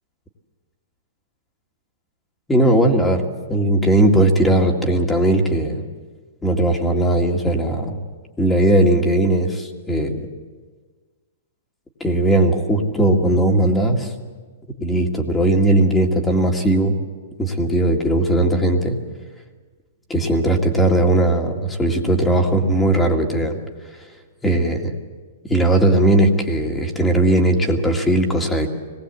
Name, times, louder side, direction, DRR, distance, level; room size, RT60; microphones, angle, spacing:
voice 1, 2.5-3.2 3.5-5.8 6.4-8.0 8.4-10.3 12.0-14.1 14.8-17.0 17.4-19.0 20.1-23.6 23.9-24.1 24.4-24.9 25.4-28.7, right 1 dB, 10° left, 3 dB, 2.2 m, -18 dB
25.0 x 19.5 x 8.2 m, 1.5 s
hypercardioid pair, 155°, 0 cm